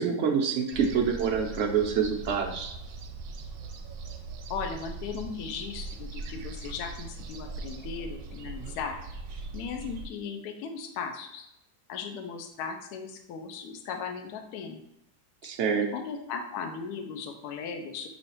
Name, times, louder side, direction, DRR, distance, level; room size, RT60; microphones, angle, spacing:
voice 1, 0.0-2.7 15.4-15.9, right 6 dB, 85° right, 1 dB, 0.6 m, -26 dB
sound 1, 0.7-10.1, right 3 dB, 65° right, 0.9 m, -40 dB
voice 2, 4.5-9.0 9.5-11.4 11.9-14.9 15.7-18.1, left 6 dB, 75° left, 4 dB, 1.0 m, -37 dB
5.6 x 3.1 x 2.9 m, 0.81 s
omnidirectional pair, 1.8 m